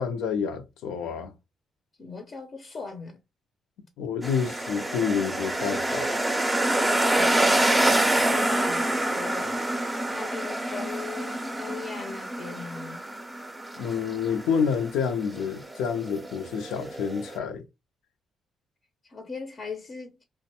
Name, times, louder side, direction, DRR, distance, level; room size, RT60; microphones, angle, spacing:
voice 1, 0.0-1.3 4.0-6.2 13.8-17.6, left 6 dB, 90° left, 0.5 m, -28 dB
voice 2, 2.0-3.2 7.1-7.7 8.1-9.6 10.1-13.0 19.0-20.2, left 4 dB, 45° left, 0.6 m, -39 dB
sound 1, 4.2-17.4, right 1 dB, 10° right, 0.5 m, -27 dB
2.5 x 2.1 x 2.7 m
cardioid pair, 90°, 0 cm